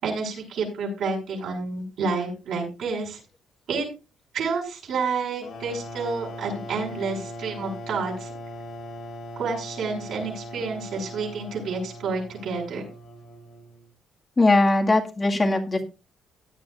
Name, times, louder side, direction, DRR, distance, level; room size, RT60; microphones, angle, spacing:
voice 1, 0.0-3.2 3.7-3.9 4.3-8.3 9.4-12.8, right 4 dB, 75° right, -2 dB, 5.8 m, -29 dB
sound 1, 5.4-13.9, equal, 70° left, 4.5 m, -39 dB
voice 2, 14.4-15.8, left 2 dB, 25° left, 2 dB, 2.0 m, -20 dB
16.5 x 9.2 x 2.5 m, 0.29 s
cardioid pair, 90°, 0 cm